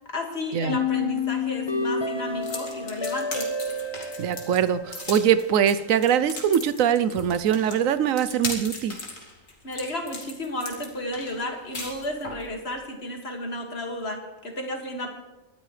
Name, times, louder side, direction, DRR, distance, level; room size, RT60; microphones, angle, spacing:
voice 1, 0.1-3.5 9.6-15.1, left 1 dB, 50° left, 2 dB, 2.4 m, -33 dB
sound 1, 0.7-5.7, left 4 dB, 20° left, 1.1 m, -30 dB
sound 2, 2.4-12.5, left 3 dB, 75° left, 2.7 m, -37 dB
voice 2, 4.2-9.0, right 9 dB, 80° right, 13 dB, 1.1 m, -22 dB
28.5 x 12.5 x 3.3 m, 1.1 s
omnidirectional pair, 1.4 m